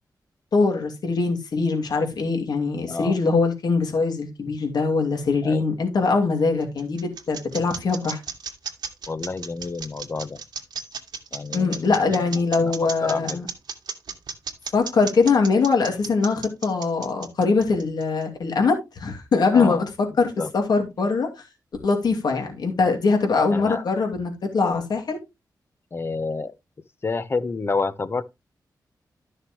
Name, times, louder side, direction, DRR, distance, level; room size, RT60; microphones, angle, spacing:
voice 1, 0.5-8.2 11.5-13.5 14.7-19.8 20.2-21.3 21.8-25.2, left 4 dB, 70° left, 2.6 m, -22 dB
sound 1, 6.4-18.2, right 6 dB, 75° right, 1.9 m, -34 dB
voice 2, 9.1-10.4 11.3-13.4 19.5-19.8 20.4-20.5 23.5-23.8 25.9-26.5 27.0-28.2, left 4 dB, 35° left, 0.8 m, -29 dB
13.0 x 6.5 x 3.1 m
wide cardioid pair, 150°, 7 cm